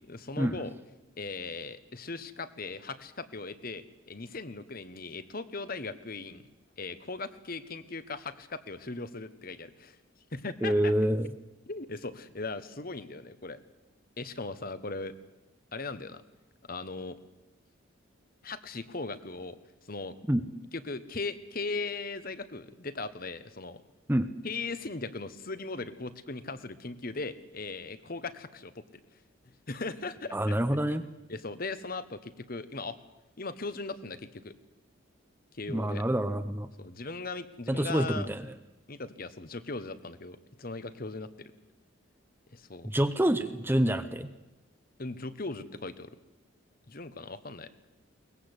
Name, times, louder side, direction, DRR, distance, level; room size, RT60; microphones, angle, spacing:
voice 1, 0.1-0.7 1.2-6.5 6.8-10.0 10.3-10.9 11.7-13.6 14.2-15.1 15.7-16.2 16.7-17.2 18.4-19.6 19.8-20.2 20.7-23.8 24.4-28.8 29.7-30.6 31.3-33.0 33.4-34.5 35.5-36.0 36.8-38.3 38.9-41.5 42.5-42.9 45.0-46.1 46.9-47.7, left 3 dB, 45° left, 13 dB, 1.2 m, -38 dB
voice 2, 10.6-11.3 20.3-20.4 24.1-24.3 30.3-31.1 35.7-36.7 37.7-38.4 42.8-44.3, right 1 dB, 10° right, 9 dB, 0.8 m, -27 dB
22.5 x 20.0 x 8.2 m, 1.0 s
head